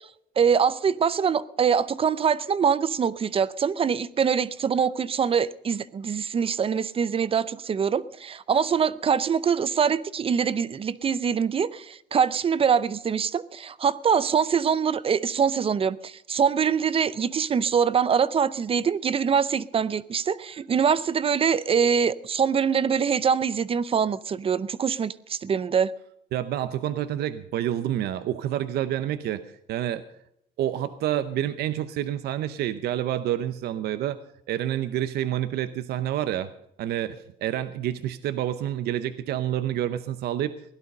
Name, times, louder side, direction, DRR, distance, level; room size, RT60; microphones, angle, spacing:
voice 1, 0.4-25.9, right 7 dB, 35° right, 0.6 m, -24 dB
voice 2, 26.3-30.0 30.6-34.2 34.5-36.5 36.8-40.6, right 11 dB, 70° right, 0.7 m, -28 dB
17.0 x 11.5 x 5.4 m
cardioid pair, 110°, 17 cm